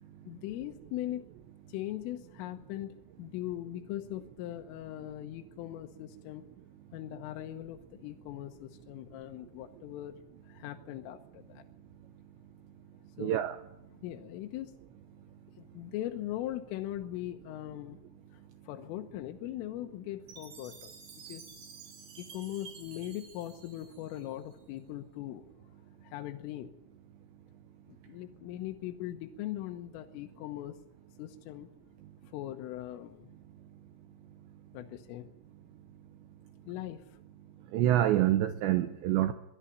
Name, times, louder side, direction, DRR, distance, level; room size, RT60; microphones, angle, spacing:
voice 1, 0.3-1.2 1.7-6.4 6.9-10.2 10.5-11.6 13.2-13.5 14.0-14.8 15.6-18.0 18.7-20.9 21.3-21.5 22.2-25.4 26.0-26.7 28.1-30.8 31.2-31.7 32.3-33.3 34.7-35.2 36.7-37.0, left 13 dB, 80° left, 3.6 m, -40 dB
voice 2, 13.2-13.6 37.7-39.3, right 13 dB, 75° right, 2.8 m, -26 dB
Chime, 20.3-24.5, right 5 dB, 50° right, 4.2 m, -51 dB
23.0 x 14.0 x 10.0 m
omnidirectional pair, 5.9 m